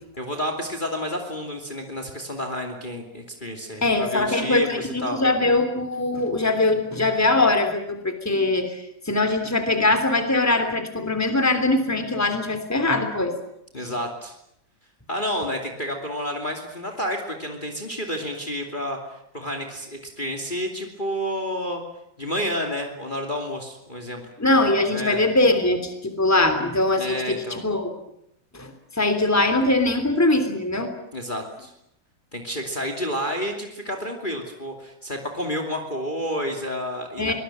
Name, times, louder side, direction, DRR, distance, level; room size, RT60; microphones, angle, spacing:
voice 1, 0.2-5.2 13.7-14.4 15.1-21.8 22.2-24.2 24.9-25.2 27.0-27.6 31.1-31.7 32.3-37.3, equal, 25° left, 3 dB, 2.9 m, -30 dB
voice 2, 3.8-13.3 13.8-13.9 24.4-27.9 28.5-30.9 37.2-37.3, left 2 dB, 10° left, 7 dB, 3.1 m, -22 dB
24.5 x 20.0 x 9.1 m, 0.79 s
omnidirectional pair, 2.1 m